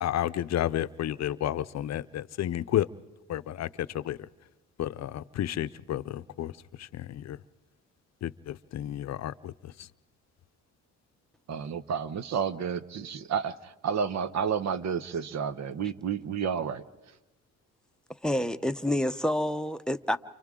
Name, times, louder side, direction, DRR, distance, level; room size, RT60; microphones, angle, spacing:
voice 1, 0.0-2.9 3.3-4.3 4.8-7.4 8.2-9.9, left 12 dB, 60° left, 14 dB, 0.6 m, -32 dB
voice 2, 11.5-16.8, right 7 dB, 65° right, 14 dB, 1.0 m, -31 dB
voice 3, 18.2-20.2, left 1 dB, 5° left, 9 dB, 0.7 m, -28 dB
30.0 x 28.0 x 3.8 m, 1.1 s
cardioid pair, 90°, 30 cm